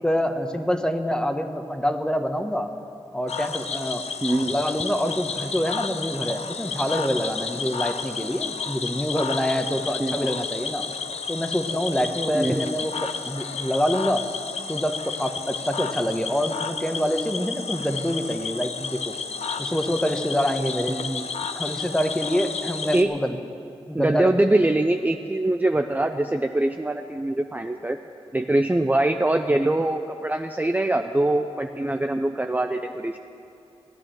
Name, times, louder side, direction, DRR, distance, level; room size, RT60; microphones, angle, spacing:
voice 1, 0.0-2.7 3.1-4.0 4.4-10.9 11.3-14.2 14.7-19.2 19.6-21.0 21.5-23.4 23.9-24.5, equal, 5° left, 6 dB, 1.2 m, -26 dB
Cricket / Frog, 3.3-23.0, left 5 dB, 75° left, 0.7 m, -32 dB
voice 2, 4.2-4.6 10.0-10.3 12.3-12.8 20.9-21.3 22.9-23.1 23.9-28.0 28.3-33.2, right 1 dB, 15° right, 5 dB, 0.6 m, -23 dB
16.0 x 9.6 x 7.7 m, 2.6 s
cardioid pair, 50°, 11 cm